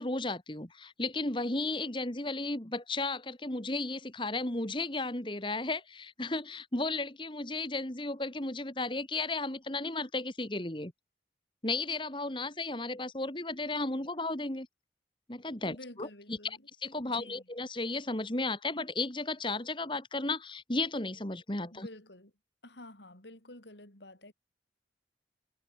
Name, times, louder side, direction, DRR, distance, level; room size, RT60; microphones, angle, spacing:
voice 1, 0.0-10.9 11.6-14.7 15.3-16.1 16.8-21.9, left 2 dB, 30° left, 2.2 m, -34 dB
voice 2, 15.6-16.7 17.1-17.5 21.7-22.3 22.6-24.3, left 1 dB, 85° left, 7.2 m, -50 dB
head